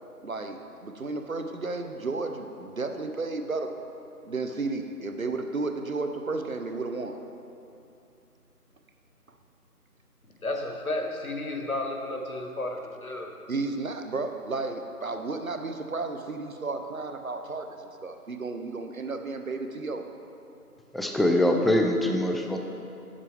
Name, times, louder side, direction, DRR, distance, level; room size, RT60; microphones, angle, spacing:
voice 1, 0.2-3.8 4.2-7.2 13.5-20.0, right 3 dB, 60° right, 6 dB, 0.6 m, -33 dB
voice 2, 10.4-13.5, left 2 dB, 60° left, 3 dB, 0.9 m, -32 dB
voice 3, 20.9-22.6, left 1 dB, ahead, 2 dB, 0.4 m, -23 dB
8.0 x 7.4 x 3.3 m, 2.8 s
figure-of-eight pair, 175°, 47 cm